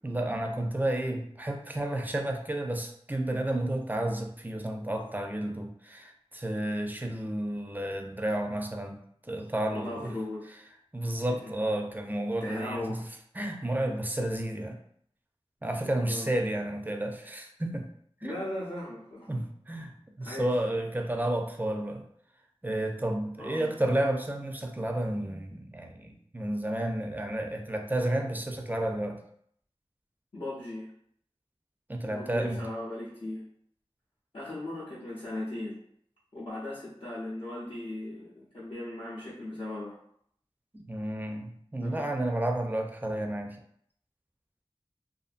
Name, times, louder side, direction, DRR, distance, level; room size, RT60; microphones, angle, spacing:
voice 1, 0.0-9.0 9.2-10.1 10.9-13.0 13.3-14.8 15.6-17.9 18.2-18.3 19.3-22.0 22.6-29.2 31.9-32.6 40.7-43.6, right 1 dB, 15° right, 3 dB, 0.4 m, -31 dB
voice 2, 9.7-10.4 11.3-11.6 12.4-13.0 16.0-16.3 18.2-19.3 20.2-20.5 23.4-23.7 30.3-30.9 32.1-33.4 34.3-35.8 36.3-40.0 41.8-42.1, left 1 dB, 60° left, -10 dB, 0.7 m, -38 dB
2.5 x 2.5 x 2.4 m, 0.67 s
wide cardioid pair, 50°, 11 cm